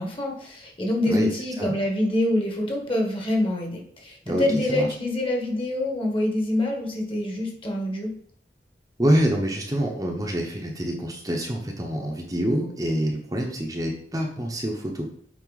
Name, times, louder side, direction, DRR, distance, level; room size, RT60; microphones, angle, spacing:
voice 1, 0.0-8.1, left 1 dB, 30° left, 0 dB, 1.4 m, -26 dB
voice 2, 4.3-4.9 9.0-15.1, equal, 20° right, 0 dB, 0.9 m, -26 dB
7.5 x 4.3 x 4.1 m, 0.63 s
head